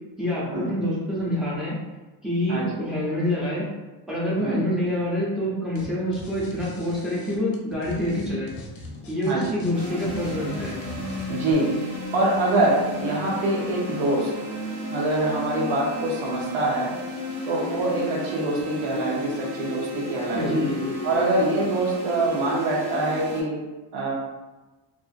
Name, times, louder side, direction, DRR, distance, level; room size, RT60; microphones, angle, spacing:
voice 1, 0.2-1.8 2.2-3.7 4.1-8.5 9.1-10.8 20.3-21.0, left 1 dB, ahead, -7 dB, 0.5 m, -26 dB
voice 2, 2.5-2.8 4.4-4.6 9.3-9.6 11.3-11.7 12.1-14.3 14.9-16.9 17.4-20.7 21.0-23.6 23.9-24.1, right 2 dB, 90° right, -3 dB, 0.8 m, -25 dB
sound 1, 5.7-5.9 6.1-11.5, left 2 dB, 50° left, 0.5 m, -41 dB
sound 2, 9.7-23.4, left 1 dB, 55° right, 1.2 m, -33 dB
2.5 x 2.4 x 2.4 m, 1.1 s
cardioid pair, 170°, 47 cm